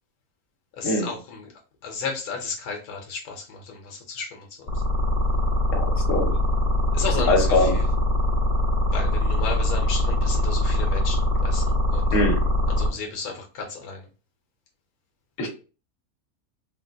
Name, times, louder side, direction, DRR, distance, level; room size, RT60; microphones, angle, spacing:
voice 1, 0.8-1.4 1.8-4.4 6.9-7.5 8.9-11.2 11.4-11.6 11.9-12.1 12.8-14.0, left 5 dB, 85° left, 2 dB, 1.2 m, -33 dB
sound 1, 4.7-12.9, equal, 45° left, 1.2 m, -22 dB
voice 2, 5.7-6.3 7.1-7.8 12.1-12.4 15.4-15.5, left 2 dB, 65° left, 1 dB, 1.3 m, -23 dB
3.6 x 2.2 x 2.6 m, 0.33 s
omnidirectional pair, 1.5 m